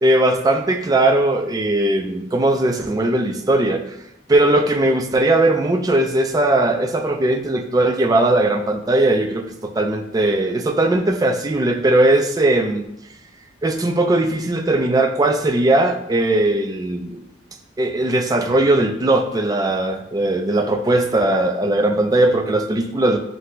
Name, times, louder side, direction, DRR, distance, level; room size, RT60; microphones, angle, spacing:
voice 1, 0.0-3.8 4.3-12.8 13.6-17.2 17.8-23.2, right 1 dB, 20° right, 5 dB, 0.3 m, -18 dB
7.3 x 2.6 x 2.2 m, 0.81 s
head